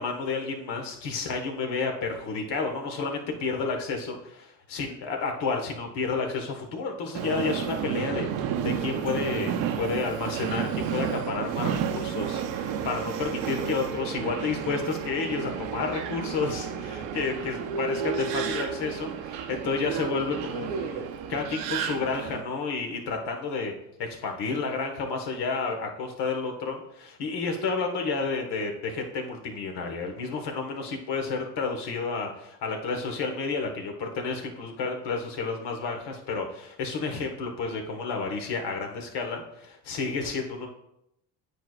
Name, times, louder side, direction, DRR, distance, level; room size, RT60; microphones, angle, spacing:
voice 1, 0.0-4.2 4.7-21.0 21.3-23.7 24.0-40.7, left 4 dB, 60° left, 3 dB, 1.4 m, -31 dB
Subway metro underground, 7.1-22.4, right 8 dB, 70° right, 0.8 m, -31 dB
9.0 x 4.7 x 2.4 m, 0.79 s
supercardioid pair, 85°, 45 cm